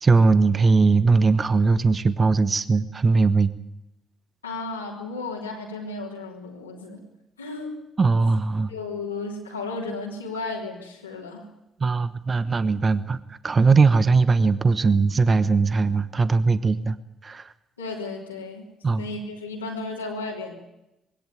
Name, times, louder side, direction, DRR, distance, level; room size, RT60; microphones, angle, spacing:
voice 1, 0.0-3.5 8.0-8.7 11.8-17.0 17.2-17.5 18.8-19.1, right 4 dB, 35° right, 15 dB, 1.1 m, -20 dB
voice 2, 4.4-7.0 7.4-7.8 8.7-11.5 17.8-18.6 19.0-20.6, left 3 dB, 90° left, -2 dB, 3.2 m, -34 dB
21.5 x 17.0 x 9.3 m, 0.90 s
figure-of-eight pair, 45°, 0 cm